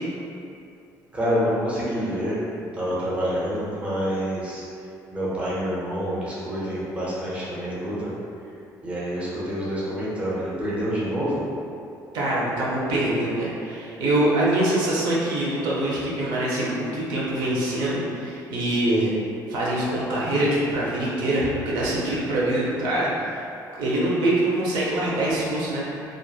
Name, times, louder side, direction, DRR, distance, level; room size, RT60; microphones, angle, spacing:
voice 1, 1.1-4.6 5.1-8.1 8.8-11.5, equal, 15° right, -8 dB, 0.6 m, -27 dB
voice 2, 12.1-19.1 19.5-23.4 23.7-26.2, right 1 dB, 80° right, -6 dB, 0.6 m, -24 dB
2.9 x 2.4 x 2.2 m, 2.6 s
cardioid pair, 155°, 7 cm